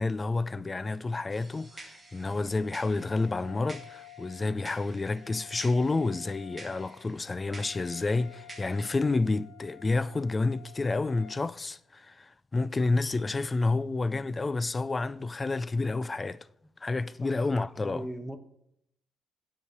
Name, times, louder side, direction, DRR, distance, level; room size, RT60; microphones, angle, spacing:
voice 1, 0.0-16.5 16.8-18.1, left 3 dB, 25° left, 0.3 m, -29 dB
sound 1, 1.3-9.0, right 2 dB, 20° right, 1.6 m, -51 dB
Wind instrument woodwind instrument, 1.5-11.5, left 16 dB, 60° left, 1.2 m, -52 dB
voice 2, 17.2-17.5 17.8-18.4, right 1 dB, 5° left, 1.1 m, -41 dB
9.8 x 4.9 x 6.8 m
cardioid pair, 90°, 0 cm